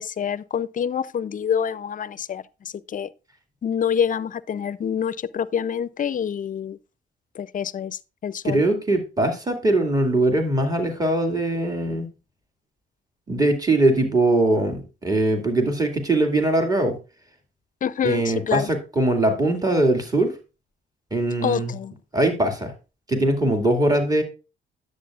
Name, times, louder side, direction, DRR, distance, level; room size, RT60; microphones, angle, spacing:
voice 1, 0.0-3.1 3.6-6.8 7.3-8.6 17.8-18.7 21.4-21.9, left 8 dB, 40° left, 0.5 m, -26 dB
voice 2, 8.4-12.1 13.3-17.0 18.0-20.4 21.1-21.7 22.1-22.7 23.1-24.2, right 2 dB, 20° right, 2.2 m, -21 dB
10.0 x 8.1 x 2.4 m
cardioid pair, 90°, 20 cm